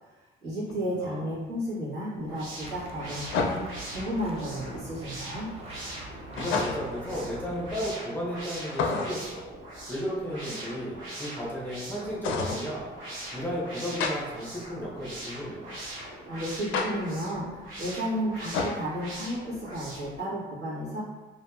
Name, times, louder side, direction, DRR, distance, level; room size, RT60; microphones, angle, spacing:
voice 1, 0.4-3.6 3.9-5.5 16.3-21.0, equal, 60° right, -9 dB, 1.4 m, -33 dB
sound 1, 0.7-0.8 3.3-3.9 6.4-7.0 8.7-9.3 12.2-12.7 14.0-14.1 16.7-16.9 18.5-18.8, left 4 dB, 75° left, 0.4 m, -29 dB
voice 2, 0.9-1.3 6.3-9.4 9.9-12.9 13.3-15.6, equal, 10° left, -6 dB, 0.7 m, -34 dB
sound 2, 2.1-20.2, right 1 dB, 85° right, 0.9 m, -42 dB
sound 3, 2.6-8.0, right 3 dB, 30° right, 0.4 m, -44 dB
2.7 x 2.6 x 2.3 m, 1.2 s
cardioid pair, 90°, 20 cm